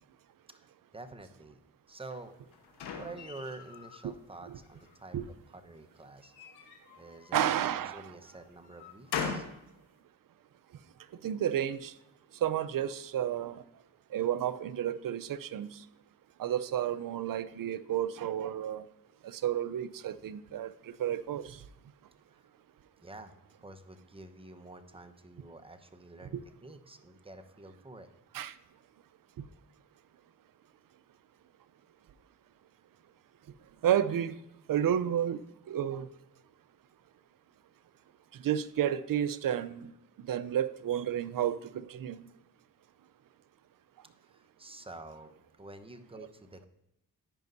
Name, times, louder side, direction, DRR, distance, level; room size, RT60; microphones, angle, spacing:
voice 1, 0.5-1.6 1.9-2.3 3.0-6.3 7.0-7.4 7.9-9.4 22.3-22.5 23.0-23.3 23.6-26.4 26.6-28.1 44.2-46.7, right 2 dB, 15° right, 7 dB, 1.0 m, -48 dB
sound 1, 2.1-4.0 4.5-5.2 6.2-7.7 8.3-9.6, left 6 dB, 80° left, 1.2 m, -40 dB
voice 2, 7.3-8.1 11.2-11.9 12.4-13.6 14.1-15.8 16.4-18.8 19.2-21.6 26.3-26.4 28.3-28.5 33.8-34.4 34.7-35.4 35.7-36.1 38.4-39.9 40.3-42.2 46.2-46.3, right 10 dB, 60° right, 14 dB, 0.6 m, -31 dB
14.5 x 5.4 x 2.7 m, 0.86 s
supercardioid pair, 45°, 39 cm